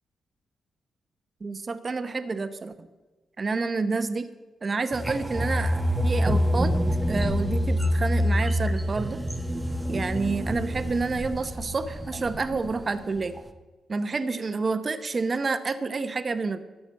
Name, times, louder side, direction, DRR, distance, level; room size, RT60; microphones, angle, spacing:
voice 1, 1.4-2.9 3.4-4.3 4.6-6.7 7.1-9.2 9.9-13.4 13.9-16.6, right 4 dB, 35° right, 11 dB, 0.9 m, -29 dB
sound 1, 4.9-12.8 13.2-13.4, equal, 10° right, 1.0 m, -26 dB
12.0 x 7.0 x 8.8 m, 1.2 s
cardioid pair, 95°, 0 cm